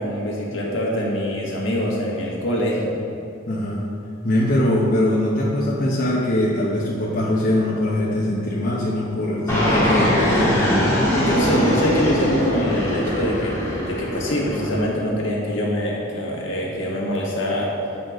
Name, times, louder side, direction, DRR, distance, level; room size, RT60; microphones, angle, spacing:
voice 1, 0.0-3.0 11.3-17.7, equal, 70° left, -3 dB, 1.5 m, -24 dB
voice 2, 3.5-3.9 4.2-10.9, left 1 dB, 45° left, -5 dB, 0.8 m, -22 dB
Fixed-wing aircraft airplane, 9.5-14.9, left 1 dB, 15° left, 1.5 m, -21 dB
7.8 x 4.3 x 5.0 m, 2.7 s
head